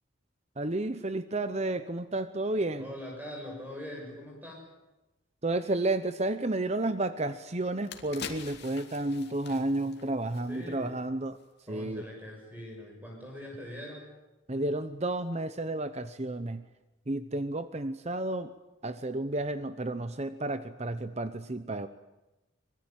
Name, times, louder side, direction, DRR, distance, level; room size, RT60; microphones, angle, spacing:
voice 1, 0.6-2.9 5.4-11.4 11.7-12.0 14.5-16.6 17.1-18.5 18.8-21.9, right 2 dB, 35° right, 11 dB, 0.9 m, -31 dB
voice 2, 2.8-4.6 10.5-11.0 11.7-14.1, left 1 dB, 10° right, 0 dB, 6.8 m, -42 dB
sound 1, 7.2-7.3 7.7-10.9 11.3-11.4, left 6 dB, 55° left, 2.8 m, -45 dB
25.0 x 22.5 x 9.1 m, 1.0 s
head